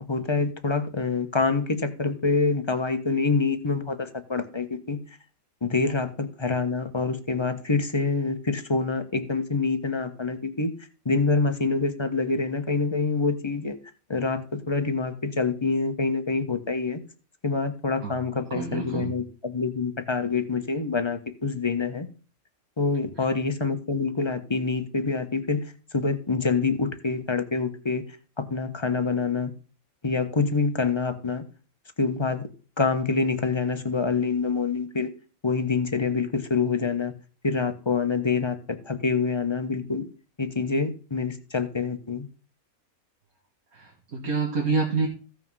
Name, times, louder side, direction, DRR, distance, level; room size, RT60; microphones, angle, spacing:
voice 1, 0.1-5.0 5.6-10.7 11.0-13.8 14.1-17.0 17.4-22.1 22.8-25.6 25.9-28.0 28.4-29.5 30.0-31.4 32.0-32.5 32.8-35.1 35.4-37.1 37.4-40.1 40.4-42.3, left 4 dB, 20° left, 7 dB, 1.1 m, -26 dB
voice 2, 18.5-19.1 43.7-45.1, right 4 dB, 75° right, -1 dB, 2.2 m, -27 dB
15.0 x 5.6 x 5.5 m, 0.37 s
omnidirectional pair, 1.5 m